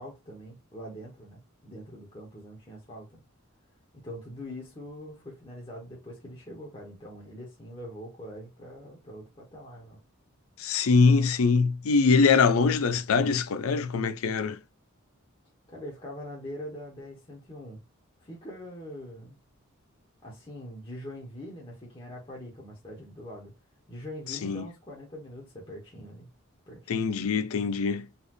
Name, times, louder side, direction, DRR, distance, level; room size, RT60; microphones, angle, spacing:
voice 1, 0.0-3.2 3.9-10.0 15.7-17.8 18.2-19.4 20.2-23.5 23.9-26.3 26.7-27.0, equal, 25° left, 1.4 m, -43 dB
voice 2, 10.6-14.6 24.3-24.7 26.9-28.1, left 4 dB, 85° left, 0.5 m, -23 dB
4.2 x 3.4 x 3.1 m
head